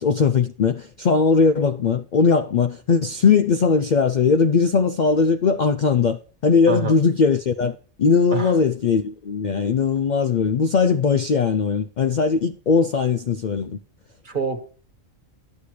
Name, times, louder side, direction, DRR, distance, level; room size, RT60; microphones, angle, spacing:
voice 1, 0.0-13.8, left 5 dB, 75° left, 0.4 m, -19 dB
voice 2, 14.2-14.7, right 4 dB, 40° right, 1.5 m, -26 dB
12.0 x 8.4 x 3.2 m
omnidirectional pair, 1.4 m